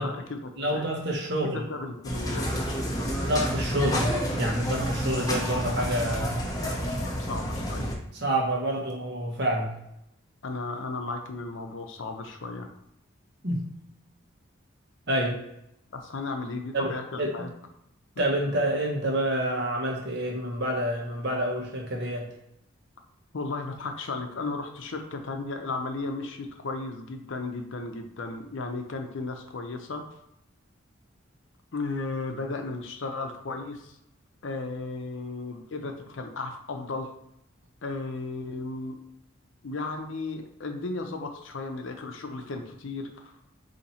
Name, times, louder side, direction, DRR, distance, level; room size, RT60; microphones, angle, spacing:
voice 1, 0.0-0.9 1.4-2.8 7.2-7.9 10.4-12.7 15.9-17.5 18.2-18.3 23.3-30.0 31.7-34.0 34.4-37.1 37.8-39.0 39.6-43.3, left 3 dB, 70° left, 5 dB, 0.6 m, -35 dB
voice 2, 0.6-1.6 3.2-6.4 8.1-9.7 13.4-13.7 15.1-15.4 16.7-17.5 18.2-22.3, right 1 dB, 55° right, 0 dB, 1.1 m, -28 dB
sound 1, 2.0-8.0, equal, 20° left, 0.8 m, -29 dB
4.2 x 2.8 x 4.1 m, 0.79 s
head